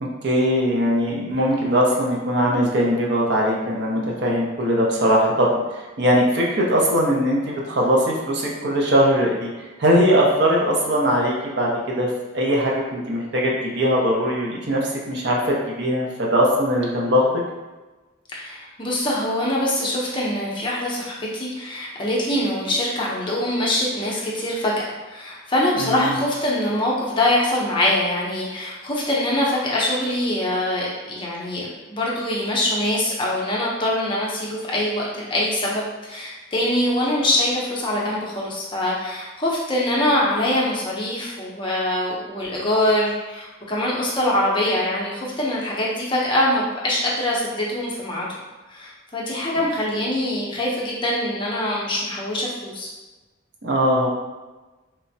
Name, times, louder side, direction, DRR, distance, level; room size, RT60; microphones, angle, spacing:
voice 1, 0.2-5.6 6.0-9.5 9.8-12.1 12.3-17.3 25.8-26.2 53.6-54.1, equal, 55° right, -3 dB, 0.5 m, -20 dB
voice 2, 18.3-24.7 25.0-48.3 48.7-52.9, left 1 dB, 25° left, -5 dB, 0.5 m, -23 dB
3.2 x 2.0 x 2.6 m, 1.2 s
head